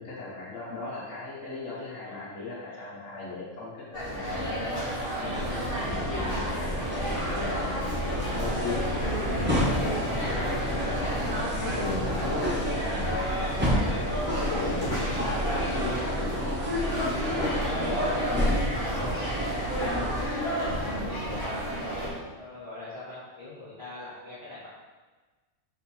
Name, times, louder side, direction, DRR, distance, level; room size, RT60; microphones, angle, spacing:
voice 1, 0.0-6.9 7.3-10.7 11.6-13.0 13.7-13.9 14.3-15.3 15.7-16.6 17.2-18.6 18.9-19.1, left 3 dB, 75° left, -7 dB, 1.6 m, -38 dB
sound 1, 3.9-22.1, equal, 45° left, 1.8 m, -31 dB
sound 2, 5.3-20.2, equal, 10° right, 0.7 m, -31 dB
voice 2, 12.1-13.2 20.4-21.8 22.3-24.7, left 2 dB, 30° left, -11 dB, 1.0 m, -41 dB
3.6 x 3.2 x 4.4 m, 1.3 s
omnidirectional pair, 1.3 m